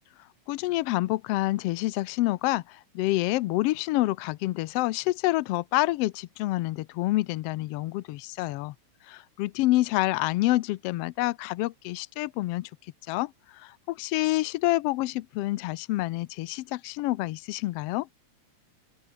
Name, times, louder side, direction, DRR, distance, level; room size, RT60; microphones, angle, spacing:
voice 1, 0.5-8.7 9.1-12.7 13.1-13.3 13.6-18.1, left 18 dB, 90° left, 1.3 m, -27 dB
open air
omnidirectional pair, 3.5 m